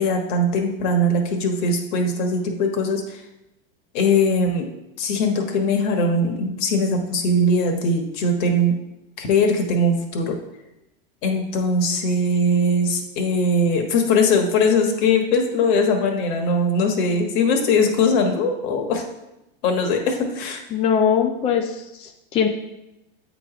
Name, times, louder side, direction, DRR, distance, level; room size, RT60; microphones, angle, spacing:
voice 1, 0.0-3.2 3.9-4.7 5.0-8.8 9.2-10.4 11.2-19.0 19.6-20.6, left 2 dB, 55° left, 3 dB, 1.3 m, -20 dB
voice 2, 20.7-22.5, left 7 dB, 20° left, 3 dB, 0.4 m, -21 dB
8.3 x 3.2 x 4.9 m, 0.92 s
supercardioid pair, 140°, 29 cm